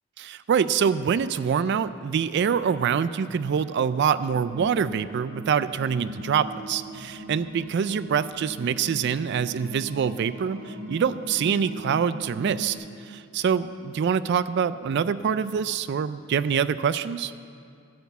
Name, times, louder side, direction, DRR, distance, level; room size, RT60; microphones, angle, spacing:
voice 1, 0.2-12.8 13.1-17.3, right 7 dB, 55° right, 14 dB, 0.3 m, -25 dB
sound 1, 4.3-12.8, equal, 75° right, 3.5 m, -40 dB
12.0 x 8.1 x 8.2 m, 2.3 s
head